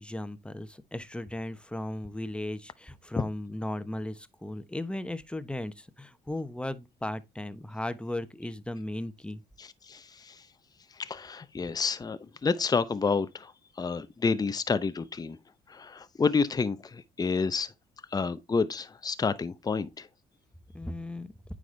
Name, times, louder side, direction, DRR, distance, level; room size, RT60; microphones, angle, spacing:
voice 1, 0.0-9.4 20.7-21.3, left 1 dB, 5° left, 1.0 m, -36 dB
voice 2, 9.6-10.4 10.9-13.5 13.8-15.4 15.7-17.7 18.1-20.1, left 4 dB, 25° left, 0.7 m, -29 dB
9.2 x 4.9 x 3.3 m
supercardioid pair, 65°, 16 cm